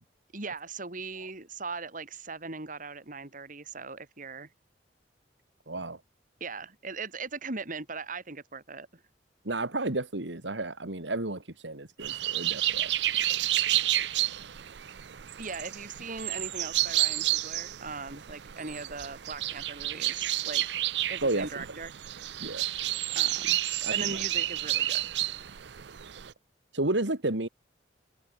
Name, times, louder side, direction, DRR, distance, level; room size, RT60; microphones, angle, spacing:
voice 1, 0.3-4.5 6.4-9.0 15.4-20.6 21.1-21.9 23.1-23.6 23.9-25.1, right 4 dB, 50° right, 3.2 m, -39 dB
voice 2, 5.7-6.0 9.4-12.9 13.3-13.4 14.0-14.1 21.2-21.5 22.4-22.6 23.8-24.2 26.7-27.5, right 2 dB, 85° right, 2.7 m, -32 dB
sound 1, 12.0-26.3, right 14 dB, 70° right, 0.6 m, -30 dB
head